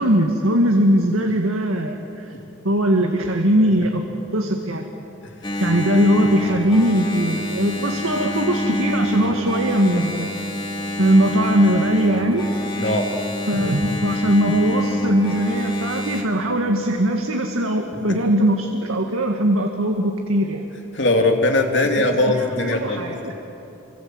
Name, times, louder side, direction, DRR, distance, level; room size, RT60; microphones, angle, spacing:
voice 1, 0.0-2.3 2.6-4.8 5.6-10.3 11.0-12.5 13.5-20.6 21.9-23.3, right 1 dB, 85° right, 3 dB, 1.9 m, -20 dB
Engine, 5.4-16.2, left 1 dB, 20° left, 2.6 m, -25 dB
voice 2, 20.9-23.0, left 2 dB, 60° left, 3 dB, 2.8 m, -19 dB
28.0 x 25.5 x 7.9 m, 3.0 s
head